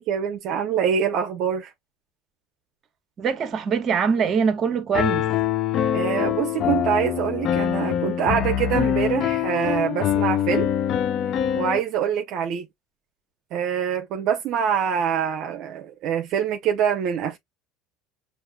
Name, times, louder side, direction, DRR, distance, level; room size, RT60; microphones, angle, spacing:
voice 1, 0.0-1.7 5.9-10.7 11.6-12.7 13.5-17.4, right 8 dB, 55° right, 0.7 m, -25 dB
voice 2, 3.2-5.3, right 6 dB, 35° right, 1.2 m, -23 dB
Piano, 4.9-11.8, left 10 dB, 45° left, 0.5 m, -24 dB
6.2 x 2.5 x 2.2 m
supercardioid pair, 125°, 0 cm